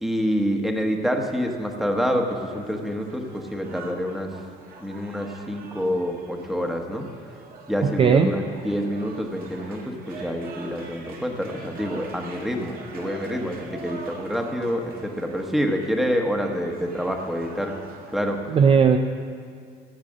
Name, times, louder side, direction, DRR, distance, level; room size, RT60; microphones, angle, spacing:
voice 1, 0.0-4.3 4.8-7.1 7.7-17.7 18.1-18.6, equal, ahead, 3 dB, 1.3 m, -27 dB
sound 1, 2.5-18.4, right 4 dB, 60° right, 1.7 m, -44 dB
voice 2, 7.8-8.3 18.5-19.0, right 6 dB, 35° right, 6 dB, 0.5 m, -17 dB
14.5 x 7.4 x 6.4 m, 2.2 s
cardioid pair, 110°, 17 cm